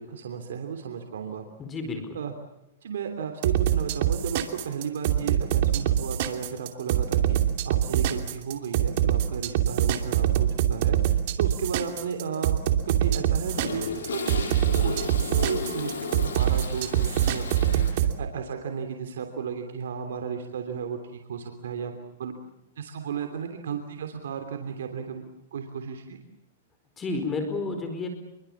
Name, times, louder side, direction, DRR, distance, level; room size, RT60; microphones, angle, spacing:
voice 1, 0.0-1.4 2.1-2.3 2.8-12.6 12.8-13.8 14.1-14.4 14.8-22.4 22.8-25.2 25.5-26.2, right 7 dB, 80° right, 5 dB, 3.1 m, -34 dB
voice 2, 1.6-2.2 27.0-28.1, left 3 dB, 15° left, 7 dB, 4.7 m, -31 dB
sound 1, 3.4-18.1, right 11 dB, 50° right, 2.8 m, -24 dB
Toilet flush, 12.6-17.9, left 4 dB, 85° left, 7.8 m, -34 dB
27.5 x 23.0 x 7.3 m, 0.89 s
hypercardioid pair, 145°, 0 cm